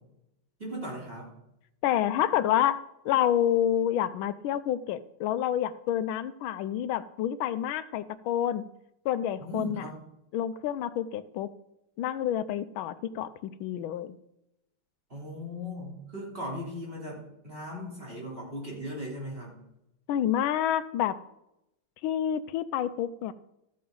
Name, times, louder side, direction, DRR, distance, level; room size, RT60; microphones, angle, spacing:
voice 1, 0.6-1.3 9.4-9.9 15.1-19.6, equal, 25° right, -3 dB, 3.4 m, -38 dB
voice 2, 1.8-8.6 9.0-9.8 10.3-11.5 12.0-14.2 20.1-21.2 22.0-23.3, left 10 dB, 85° left, 14 dB, 1.4 m, -28 dB
13.5 x 9.5 x 3.9 m, 0.85 s
omnidirectional pair, 2.2 m